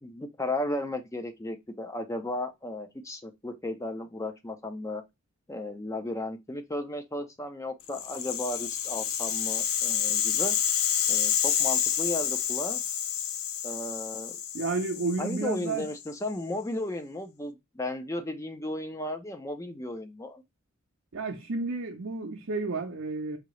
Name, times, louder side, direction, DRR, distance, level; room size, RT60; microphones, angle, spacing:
voice 1, 0.0-5.0 5.5-10.6 11.1-12.8 13.6-14.4 15.2-20.4, left 1 dB, 15° left, 0.5 m, -35 dB
Rattle (instrument), 7.9-16.1, left 9 dB, 85° left, 0.5 m, -29 dB
voice 2, 14.5-15.9 21.1-23.4, right 3 dB, 65° right, 0.6 m, -31 dB
5.0 x 2.7 x 3.1 m
head